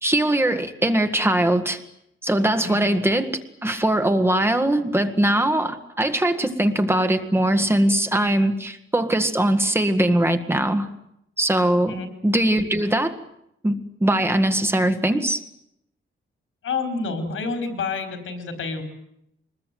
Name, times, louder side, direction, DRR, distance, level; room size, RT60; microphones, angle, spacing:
voice 1, 0.0-1.8 2.2-10.9 11.4-12.0 12.2-13.2 13.6-15.4, right 1 dB, 10° right, 8 dB, 1.7 m, -21 dB
voice 2, 16.6-18.8, left 4 dB, 80° left, 8 dB, 4.9 m, -28 dB
24.5 x 21.0 x 9.4 m, 0.77 s
wide cardioid pair, 175°, 21 cm